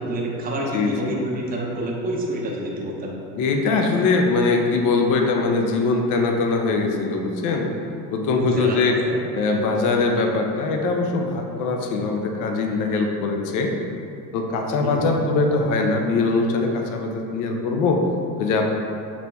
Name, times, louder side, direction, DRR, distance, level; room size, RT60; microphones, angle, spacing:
voice 1, 0.0-3.1 8.4-9.2 14.8-15.1, right 1 dB, 20° right, -3 dB, 0.7 m, -27 dB
voice 2, 0.7-1.1 3.4-7.7 8.1-9.0 9.3-13.7 14.3-18.0 18.4-18.6, left 3 dB, 40° left, 3 dB, 0.6 m, -22 dB
6.0 x 2.8 x 2.2 m, 2.5 s
hypercardioid pair, 80°, 47 cm